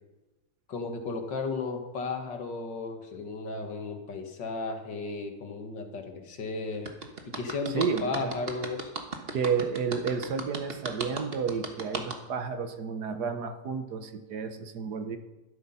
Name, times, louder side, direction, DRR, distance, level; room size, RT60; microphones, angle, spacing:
voice 1, 0.7-6.9 7.3-8.9, left 4 dB, 80° left, 4 dB, 2.3 m, -34 dB
sound 1, 6.9-12.1, right 3 dB, 35° right, 1.4 m, -35 dB
voice 2, 7.7-8.3 9.3-15.2, right 6 dB, 65° right, 8 dB, 1.6 m, -31 dB
12.5 x 11.5 x 5.6 m, 1.0 s
omnidirectional pair, 1.9 m